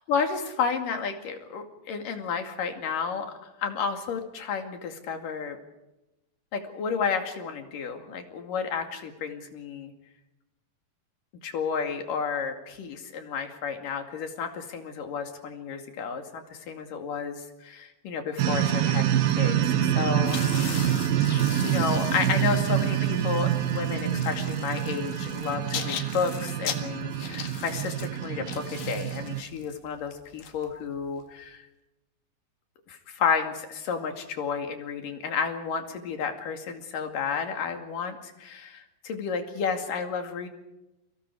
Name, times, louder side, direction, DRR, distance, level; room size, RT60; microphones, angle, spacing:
voice 1, 0.1-3.3 3.6-5.6 6.5-9.9 11.4-20.4 21.6-31.7 32.9-40.5, left 6 dB, 70° left, 5 dB, 3.9 m, -31 dB
sound 1, 18.4-29.4, right 11 dB, 80° right, 3.0 m, -26 dB
sound 2, 20.2-31.2, left 8 dB, 90° left, 3.7 m, -40 dB
30.0 x 24.5 x 4.8 m, 0.96 s
omnidirectional pair, 4.1 m